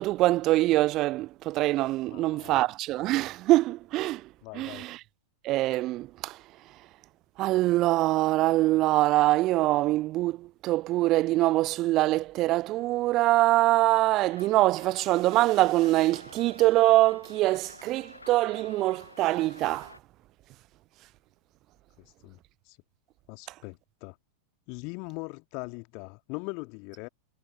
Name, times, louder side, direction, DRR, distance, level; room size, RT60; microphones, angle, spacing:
voice 1, 0.0-4.3 4.5-5.0 5.4-6.4 7.4-19.9, right 17 dB, 35° right, 0.4 m, -24 dB
voice 2, 2.1-2.6 4.4-4.9 22.0-22.4 22.7-22.8 23.3-24.2 24.7-27.1, left 34 dB, 45° left, 2.0 m, -41 dB
Breathing, 13.7-18.5, right 1 dB, 90° right, 6.2 m, -56 dB
Rain, 14.3-20.0, left 3 dB, 80° left, 7.0 m, -51 dB
figure-of-eight pair, 90°, 0 cm